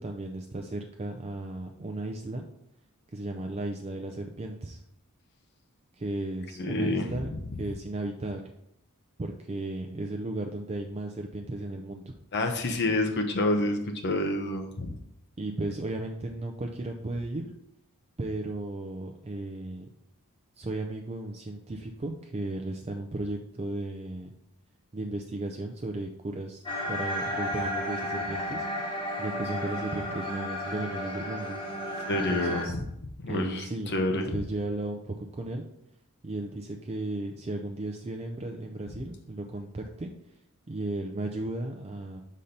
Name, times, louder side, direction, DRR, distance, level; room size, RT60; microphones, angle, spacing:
voice 1, 0.0-2.4 3.1-4.8 5.9-7.3 7.6-8.5 9.2-12.2 12.8-13.0 15.4-17.5 18.2-19.9 20.6-24.3 24.9-28.7 29.2-31.6 32.1-32.8 33.3-35.6 36.2-40.1 40.7-42.2, right 2 dB, 30° right, 3 dB, 0.5 m, -35 dB
voice 2, 6.6-7.1 12.3-14.9 32.1-32.8 33.2-34.3, left 2 dB, 50° left, 5 dB, 0.7 m, -28 dB
sound 1, 26.7-32.7, equal, 25° left, 1.1 m, -33 dB
5.5 x 4.2 x 5.1 m, 0.77 s
head